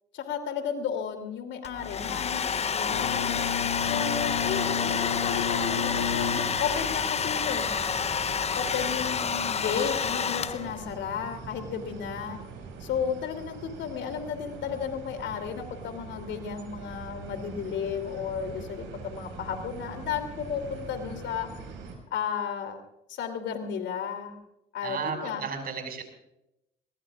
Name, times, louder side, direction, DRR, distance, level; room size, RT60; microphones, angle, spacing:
voice 1, 0.1-3.4 3.8-7.8 8.5-12.4 12.8-21.5 22.1-22.8 23.1-24.4 24.7-25.4, left 7 dB, 65° left, 6 dB, 3.0 m, -33 dB
Domestic sounds home sounds, 1.6-10.9, left 6 dB, 30° left, 0.8 m, -29 dB
Bowed string instrument, 2.9-7.1, left 8 dB, 85° left, 1.7 m, -32 dB
sound 1, 3.8-22.0, right 5 dB, 65° right, 5.6 m, -43 dB
voice 2, 24.8-26.0, right 6 dB, 45° right, 5 dB, 5.6 m, -33 dB
22.5 x 20.0 x 2.4 m, 0.85 s
supercardioid pair, 75°, 21 cm